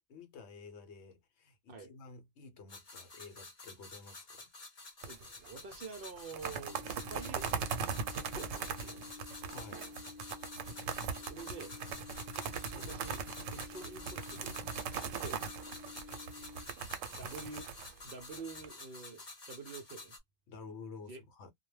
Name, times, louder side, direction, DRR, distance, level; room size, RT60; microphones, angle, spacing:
voice 1, 0.1-4.5 9.5-9.9 20.5-21.5, left 4 dB, 65° left, 0.9 m, -51 dB
sound 1, 2.7-20.2, left 3 dB, 40° left, 0.7 m, -51 dB
sound 2, 5.0-5.5 5.7-5.8 6.2-18.7, right 6 dB, 85° right, 0.9 m, -40 dB
voice 2, 5.1-9.2 11.2-11.8 12.7-13.2 13.5-14.6 15.2-15.4 17.2-17.7 18.0-20.2 21.0-21.2, right 4 dB, 60° right, 0.6 m, -48 dB
sound 3, 6.7-16.7, left 4 dB, 15° right, 0.4 m, -52 dB
2.2 x 2.1 x 3.1 m
omnidirectional pair, 1.3 m